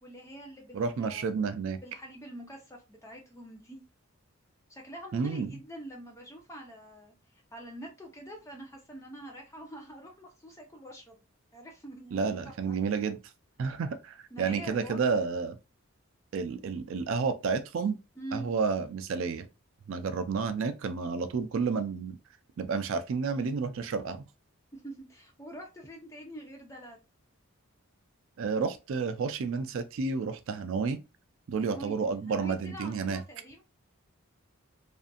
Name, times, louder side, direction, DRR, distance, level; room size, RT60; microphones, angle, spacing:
voice 1, 0.0-1.3 1.8-3.8 4.7-7.1 7.5-11.2 11.5-12.7 13.0-13.2 14.3-15.1 18.2-18.5 24.7-27.0 31.6-33.6, right 1 dB, 15° left, 0.6 m, -45 dB
voice 2, 0.7-1.8 5.1-5.5 12.1-13.2 13.6-15.6 16.3-18.0 18.3-19.5 19.9-22.2 22.6-24.2 28.4-31.0 31.5-33.2, right 5 dB, 65° right, 0.3 m, -30 dB
2.6 x 2.5 x 2.3 m
head